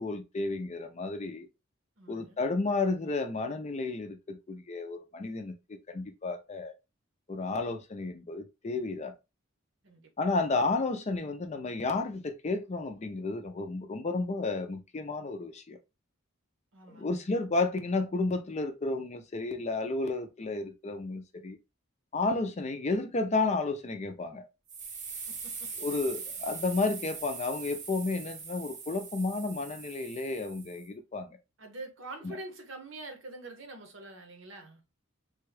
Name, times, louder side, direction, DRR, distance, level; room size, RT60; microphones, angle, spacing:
voice 1, 0.0-1.5 2.1-6.7 7.3-9.1 10.2-15.8 16.9-21.6 22.1-24.5 25.8-31.3, left 3 dB, 35° left, 0.5 m, -32 dB
voice 2, 2.0-2.4 9.8-10.4 16.7-17.3 25.3-25.7 31.6-34.8, right 2 dB, 65° right, 0.9 m, -45 dB
sound 1, 24.7-30.9, right 5 dB, 35° right, 0.7 m, -42 dB
3.4 x 2.3 x 3.3 m
head